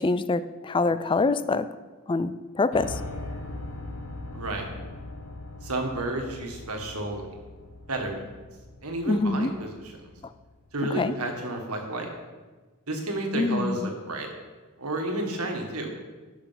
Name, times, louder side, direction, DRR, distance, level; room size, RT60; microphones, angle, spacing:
voice 1, 0.0-1.7 2.1-3.0 9.1-9.5 10.2-10.3 11.0-11.1 13.3-13.9, left 3 dB, 20° left, 14 dB, 0.4 m, -25 dB
Piano, 2.7-10.7, left 2 dB, 75° left, 1.2 m, -40 dB
voice 2, 4.3-4.7 5.6-7.2 7.9-8.3 8.8-10.1 10.7-12.1 12.9-14.3 14.8-15.9, right 1 dB, 85° right, 3 dB, 1.8 m, -31 dB
11.0 x 6.1 x 5.8 m, 1.3 s
head